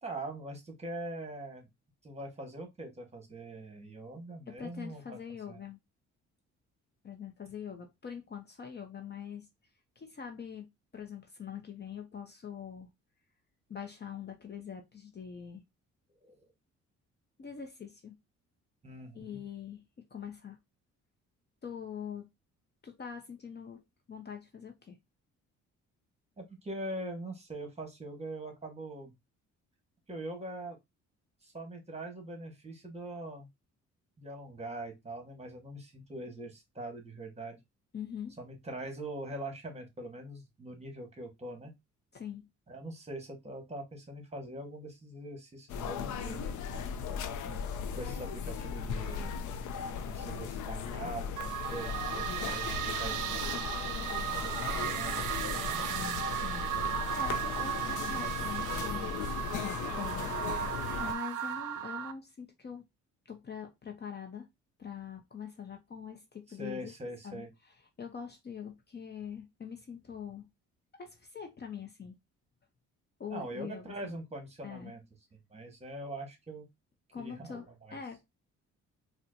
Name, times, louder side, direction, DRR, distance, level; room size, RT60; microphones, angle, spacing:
voice 1, 0.0-1.7 2.0-5.2 5.5-5.6 16.2-16.4 18.8-19.4 26.4-29.1 30.1-30.8 31.4-33.5 34.2-37.6 38.4-41.7 42.7-46.4 47.4-47.6 47.9-49.3 50.0-52.7 53.0-53.8 54.4-54.5 54.8-55.8 66.6-67.5 73.3-75.0 75.5-76.6 77.2-78.0, right 1 dB, 20° right, 1.3 m, -42 dB
voice 2, 4.5-5.8 7.0-9.5 10.0-12.9 13.7-15.6 17.4-18.2 19.1-19.8 20.1-20.6 21.6-22.2 22.8-23.8 24.1-25.0 37.9-38.4 42.1-42.4 55.9-60.3 61.0-62.9 63.3-64.5 64.8-66.9 67.2-70.4 70.9-72.2 73.2-74.1 74.6-74.9 77.1-78.2, left 7 dB, 35° left, 0.7 m, -43 dB
sound 1, 45.7-61.1, left 6 dB, 75° left, 0.5 m, -37 dB
sound 2, 51.4-62.1, right 11 dB, 85° right, 0.5 m, -35 dB
4.2 x 2.2 x 2.6 m
cardioid pair, 90°, 30 cm